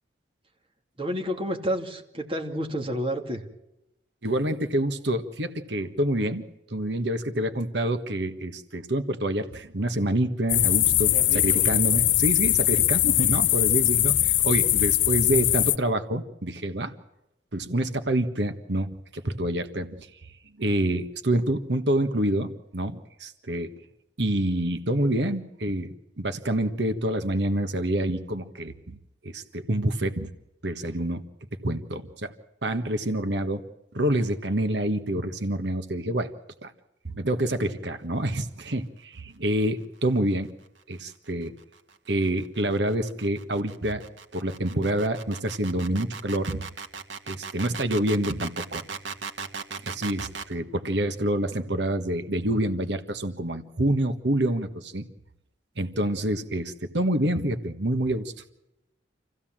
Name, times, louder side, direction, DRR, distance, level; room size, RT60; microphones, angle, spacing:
voice 1, 1.0-3.4 11.1-11.7, equal, 30° right, 2 dB, 2.7 m, -30 dB
voice 2, 4.2-6.4 6.7-16.9 17.5-20.2 20.6-23.7 24.2-29.0 29.2-30.3 30.6-31.2 31.6-32.3 32.6-33.6 33.9-36.3 36.6-36.7 37.0-40.5 40.9-41.5 42.1-44.0 44.3-46.6 47.3-48.8 49.8-55.0 55.8-58.3, right 1 dB, 70° right, 9 dB, 1.5 m, -27 dB
sound 1, 10.5-15.8, left 14 dB, 90° left, 0.7 m, -21 dB
sound 2, 41.3-50.5, right 5 dB, 90° right, 1.8 m, -38 dB
27.0 x 15.5 x 7.5 m, 0.89 s
head